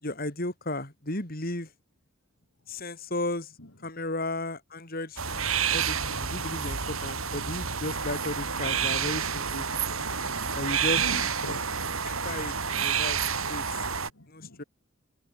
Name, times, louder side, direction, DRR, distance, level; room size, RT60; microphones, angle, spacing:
voice 1, 0.0-1.7 2.7-3.5 3.8-9.7 10.6-11.0 12.0-13.6 14.3-14.6, left 2 dB, 45° left, 4.0 m, -34 dB
sound 1, 5.2-14.1, right 7 dB, 85° right, 7.9 m, -29 dB
voice 2, 10.0-10.6 11.0-11.7 13.9-14.6, left 1 dB, 75° left, 3.2 m, -41 dB
head